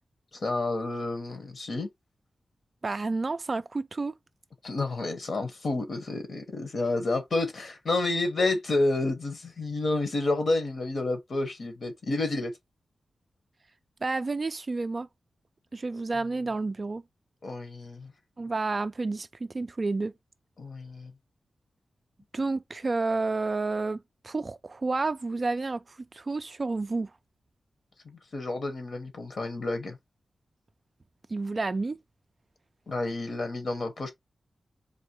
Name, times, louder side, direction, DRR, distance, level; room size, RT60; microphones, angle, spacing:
voice 1, 0.3-1.9 4.6-12.5 15.9-16.0 17.4-18.1 20.6-21.1 28.0-30.0 32.9-34.1, left 2 dB, 50° left, 1.2 m, -30 dB
voice 2, 2.8-4.1 14.0-15.1 15.7-17.0 18.4-20.1 22.3-27.1 31.3-32.0, right 3 dB, 30° right, 0.3 m, -30 dB
4.2 x 3.1 x 3.0 m
wide cardioid pair, 155°, 0 cm